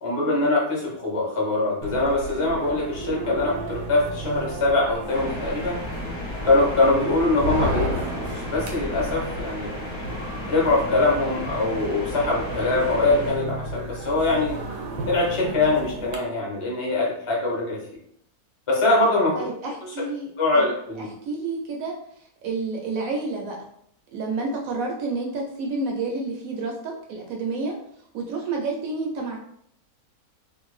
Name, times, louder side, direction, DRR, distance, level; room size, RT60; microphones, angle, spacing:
voice 1, 0.0-5.8 6.4-9.7 10.5-14.6 15.1-17.8 18.7-19.5 20.4-21.1, left 2 dB, 30° left, -3 dB, 0.6 m, -23 dB
sound 1, 1.8-16.2, right 2 dB, 85° right, 1.2 m, -33 dB
sound 2, 5.1-13.3, left 1 dB, 50° left, 0.9 m, -35 dB
voice 2, 19.3-20.7 21.0-23.6 24.1-27.8 28.1-29.4, right 3 dB, 70° right, 0 dB, 0.9 m, -30 dB
2.6 x 2.4 x 3.1 m, 0.69 s
omnidirectional pair, 1.6 m